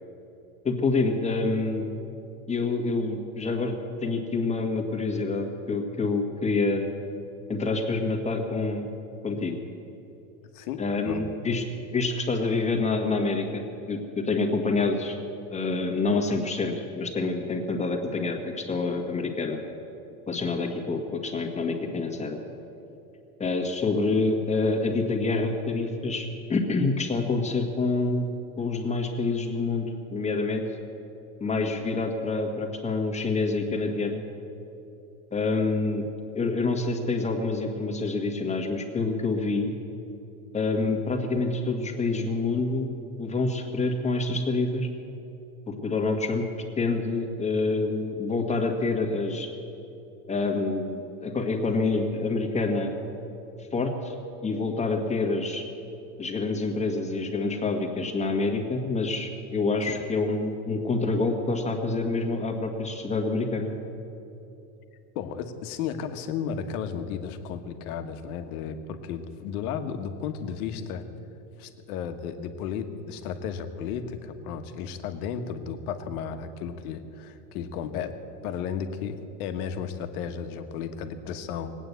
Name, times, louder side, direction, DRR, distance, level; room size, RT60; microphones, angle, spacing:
voice 1, 0.6-1.9 2.5-6.9 7.5-8.9 9.2-9.5 10.8-11.6 11.9-15.2 15.5-19.6 20.3-22.4 23.4-28.3 28.6-30.7 31.4-34.2 35.3-36.1 36.3-39.7 40.5-42.9 43.2-44.9 45.7-46.5 46.8-49.5 50.3-52.9 53.7-54.1 54.4-55.6 56.2-63.7, left 3 dB, 15° left, 2 dB, 1.6 m, -27 dB
voice 2, 10.5-11.2 59.9-60.0 65.1-71.0 71.6-78.1 78.4-81.7, left 7 dB, 65° left, 8 dB, 1.4 m, -34 dB
19.5 x 9.0 x 8.2 m, 3.0 s
supercardioid pair, 135°, 48 cm